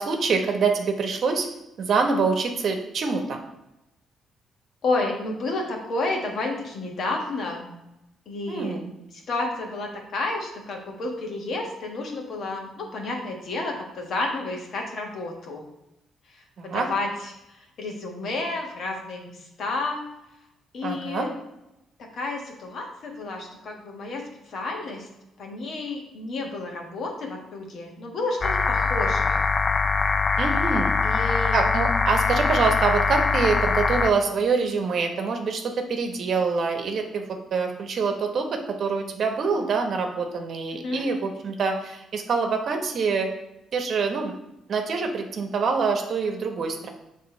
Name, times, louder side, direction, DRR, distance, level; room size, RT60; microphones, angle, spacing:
voice 1, 0.0-1.5 1.8-3.4 8.5-8.9 16.6-16.9 20.8-21.3 30.4-31.0 31.5-35.6 35.9-37.3 37.5-43.3 43.7-44.3 44.7-46.9, right 4 dB, 60° right, 4 dB, 0.9 m, -25 dB
voice 2, 4.8-7.7 8.3-8.8 9.3-15.7 16.3-20.1 20.7-21.3 22.0-25.1 25.4-29.4 31.0-31.6 40.7-41.1, left 2 dB, 60° left, 1 dB, 1.4 m, -31 dB
sound 1, 28.4-34.1, left 4 dB, 35° left, 0.4 m, -23 dB
6.8 x 3.3 x 4.4 m, 0.90 s
cardioid pair, 90°, 0 cm